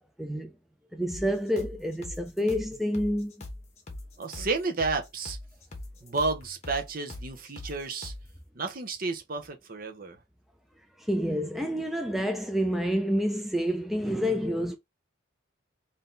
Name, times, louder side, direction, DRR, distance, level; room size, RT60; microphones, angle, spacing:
voice 1, 0.2-0.5 0.9-3.4 11.0-14.8, equal, ahead, 0.3 m, -28 dB
sound 1, 1.1-8.3, left 2 dB, 35° left, 1.2 m, -42 dB
voice 2, 4.2-5.4 6.0-8.1 8.5-10.2, right 3 dB, 45° right, 0.8 m, -31 dB
3.9 x 2.7 x 3.8 m
head